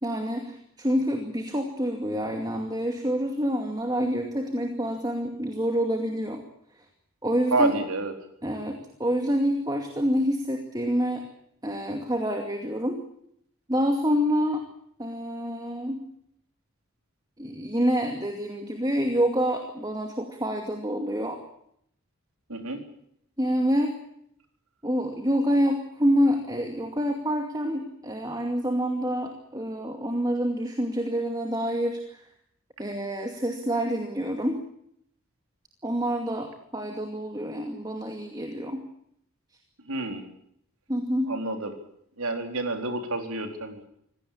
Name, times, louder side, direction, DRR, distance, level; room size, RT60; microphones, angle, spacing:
voice 1, 0.0-6.4 7.2-7.7 8.4-11.2 11.6-13.0 13.7-14.6 15.0-16.0 17.4-21.4 23.4-24.0 24.8-32.3 32.8-34.6 35.8-38.8 40.9-41.3, equal, 15° right, 4 dB, 2.4 m, -27 dB
voice 2, 7.5-8.1 22.5-22.8 39.9-40.2 41.3-41.7 42.2-43.8, right 2 dB, 75° right, 5 dB, 4.2 m, -28 dB
26.0 x 17.5 x 8.6 m, 0.71 s
head